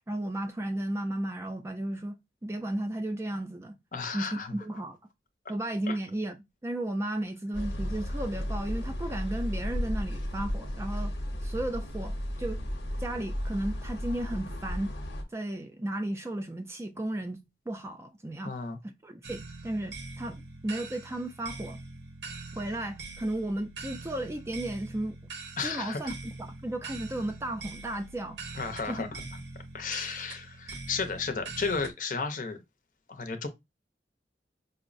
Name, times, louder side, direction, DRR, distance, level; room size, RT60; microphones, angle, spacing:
voice 1, 0.1-3.8 4.1-5.0 5.5-11.1 11.4-12.6 13.0-14.9 15.3-18.5 18.8-21.8 22.5-25.2 25.6-26.4 26.6-28.4 28.9-29.0, right 1 dB, 15° right, 0.3 m, -34 dB
voice 2, 3.9-4.5 5.9-6.0 18.4-18.8 25.6-26.1 28.5-29.2 29.7-32.6 33.1-33.5, left 4 dB, 45° left, 0.6 m, -33 dB
sound 1, 7.5-15.2, equal, 90° left, 0.8 m, -34 dB
sound 2, 19.2-31.9, right 3 dB, 90° right, 0.8 m, -43 dB
5.2 x 2.0 x 2.5 m
head